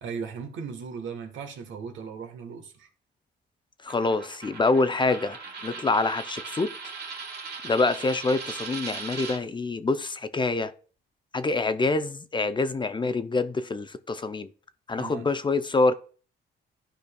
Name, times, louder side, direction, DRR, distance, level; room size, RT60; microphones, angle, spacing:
voice 1, 0.0-2.9 15.0-15.3, right 6 dB, 75° right, 1.3 m, -37 dB
voice 2, 3.8-6.7 7.6-10.7 11.3-14.5 14.9-15.9, left 3 dB, 25° left, 0.5 m, -26 dB
Coin (dropping), 3.9-9.4, right 4 dB, 55° right, 1.6 m, -39 dB
12.0 x 5.0 x 2.3 m
cardioid pair, 90°, 20 cm